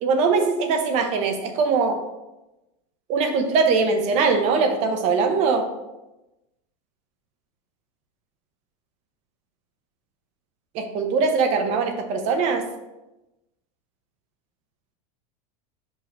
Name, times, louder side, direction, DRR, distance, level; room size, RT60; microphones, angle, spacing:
voice 1, 0.0-2.0 3.1-5.7 10.7-12.7, right 4 dB, 35° right, 6 dB, 0.8 m, -21 dB
5.5 x 5.3 x 4.5 m, 0.98 s
supercardioid pair, 170°, 19 cm